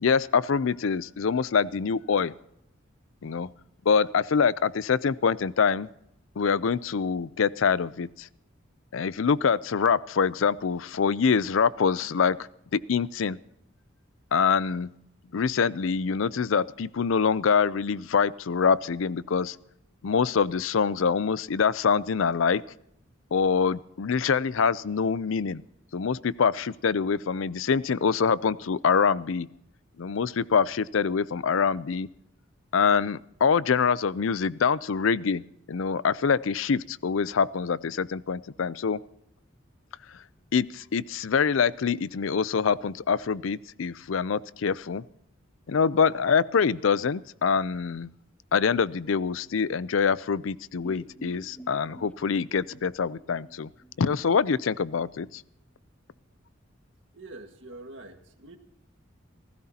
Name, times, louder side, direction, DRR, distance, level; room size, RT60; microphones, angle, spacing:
voice 1, 0.0-2.3 3.2-3.5 3.9-5.9 6.4-8.3 8.9-12.4 12.7-13.4 14.3-14.9 15.3-19.6 20.0-22.6 23.3-25.6 25.9-29.5 30.0-32.1 32.7-35.4 35.7-39.0 40.5-45.0 45.7-48.1 48.5-53.7 54.0-55.4, left 6 dB, 80° left, 19 dB, 0.5 m, -25 dB
sound 1, 50.8-54.7 54.9-55.0 55.3-55.4, right 1 dB, 5° left, 1.1 m, -48 dB
voice 2, 57.1-58.6, right 2 dB, 70° right, 6 dB, 1.8 m, -45 dB
29.5 x 15.5 x 2.9 m, 0.79 s
head